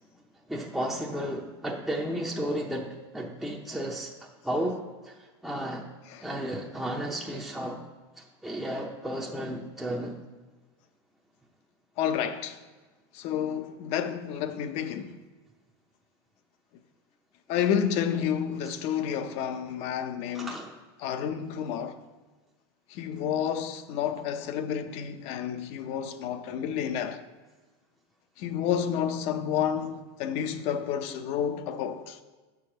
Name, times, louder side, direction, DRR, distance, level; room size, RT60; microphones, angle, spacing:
voice 1, 0.5-5.9 6.2-7.8 8.2-10.2 20.3-20.7, right 1 dB, ahead, 0.6 m, -33 dB
voice 2, 12.0-12.6 13.1-15.2 17.5-20.6 21.0-22.0 22.9-27.2 28.4-32.2, left 8 dB, 50° left, 0.7 m, -30 dB
6.5 x 4.9 x 6.3 m
supercardioid pair, 130°, 14 cm